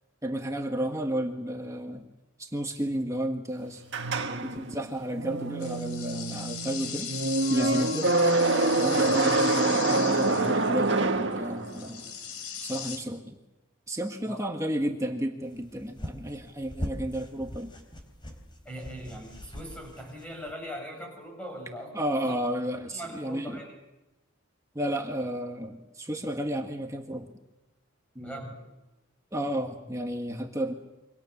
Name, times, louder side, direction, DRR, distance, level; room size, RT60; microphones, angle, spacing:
voice 1, 0.2-2.0 2.4-3.8 4.4-7.1 7.5-8.1 8.8-12.0 12.6-13.4 13.9-17.7 21.9-23.6 24.7-27.3 28.1-28.5 29.3-30.7, right 1 dB, 15° right, 3 dB, 1.6 m, -32 dB
sound 1, 3.9-12.0, right 2 dB, 55° right, 1.9 m, -26 dB
sound 2, 5.6-11.0 11.3-11.4 11.6-13.0, left 7 dB, 85° left, 3.3 m, -38 dB
voice 2, 7.6-7.9 9.2-9.4 14.2-14.5 18.6-22.0 22.9-23.7 28.2-28.6, equal, 5° left, 1 dB, 7.5 m, -40 dB
sound 3, 15.4-20.5, equal, 20° left, 3.8 m, -41 dB
27.5 x 25.0 x 7.2 m, 1.0 s
head